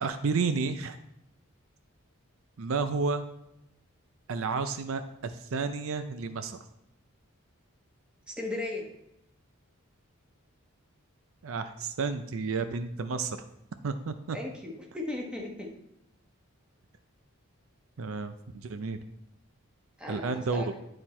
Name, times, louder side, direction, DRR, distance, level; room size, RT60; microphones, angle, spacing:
voice 1, 0.0-1.0 2.6-3.2 4.3-6.6 11.4-13.4 13.8-14.4 18.0-19.0 20.1-20.6, right 4 dB, 65° right, 10 dB, 0.5 m, -31 dB
voice 2, 8.3-8.9 14.3-15.7 20.0-20.7, left 2 dB, 5° right, -1 dB, 1.2 m, -36 dB
10.5 x 4.4 x 4.4 m, 0.84 s
head